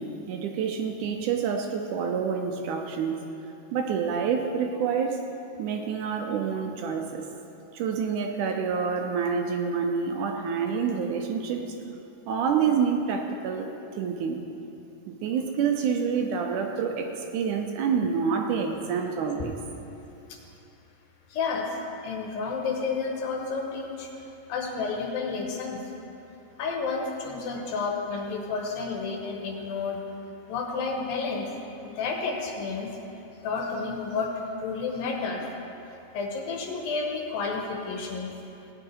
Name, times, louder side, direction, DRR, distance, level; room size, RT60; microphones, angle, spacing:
voice 1, 0.0-3.2 3.7-5.2 5.6-7.3 7.7-11.7 12.3-14.4 15.1-19.6, right 6 dB, 75° right, 3 dB, 2.0 m, -28 dB
voice 2, 21.3-21.8 22.0-24.1 24.5-25.8 26.6-30.0 30.5-31.5 31.8-32.9 33.4-35.4 36.1-38.3, left 4 dB, 85° left, 1 dB, 3.1 m, -31 dB
16.5 x 9.7 x 4.6 m, 2.9 s
omnidirectional pair, 4.0 m